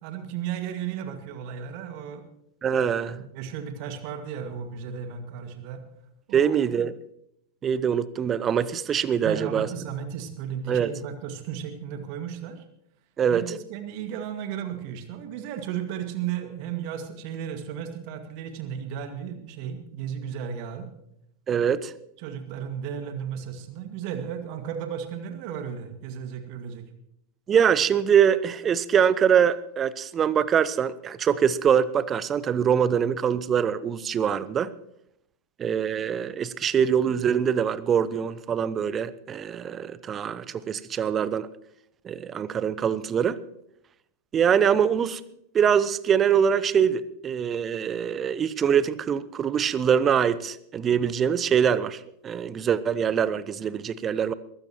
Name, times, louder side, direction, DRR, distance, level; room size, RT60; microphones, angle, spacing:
voice 1, 0.0-2.3 3.1-5.8 6.3-6.6 9.2-12.6 13.3-20.9 21.5-21.7 22.2-26.9, right 8 dB, 45° right, 7 dB, 2.0 m, -34 dB
voice 2, 2.6-3.2 6.3-6.9 7.6-9.7 10.7-10.9 13.2-13.4 21.5-21.9 27.5-34.7 35.6-41.5 42.0-43.4 44.3-45.2 45.5-54.3, right 8 dB, 25° right, 18 dB, 0.7 m, -23 dB
22.0 x 15.5 x 3.0 m, 0.77 s
figure-of-eight pair, 90°, 0 cm